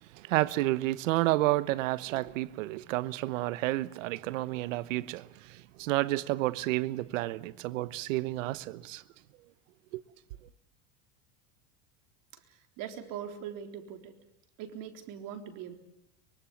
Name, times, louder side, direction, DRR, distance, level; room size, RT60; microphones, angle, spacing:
voice 1, 0.1-9.0 9.9-10.0, right 17 dB, 80° right, 1.1 m, -30 dB
voice 2, 12.5-14.1 14.6-15.7, right 9 dB, 55° right, 3.8 m, -41 dB
24.0 x 23.5 x 7.1 m
supercardioid pair, 115°, 38 cm